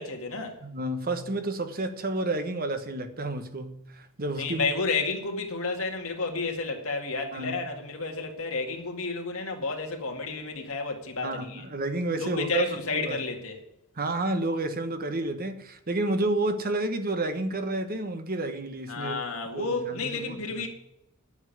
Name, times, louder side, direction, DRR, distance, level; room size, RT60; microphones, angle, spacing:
voice 1, 0.0-0.6 4.4-11.6 12.2-13.6 18.9-20.7, left 3 dB, 70° left, 2.2 m, -31 dB
voice 2, 0.6-4.7 7.3-7.6 11.2-13.2 14.0-19.2 19.5-20.7, right 2 dB, 45° right, 1.2 m, -30 dB
9.7 x 7.1 x 9.3 m
head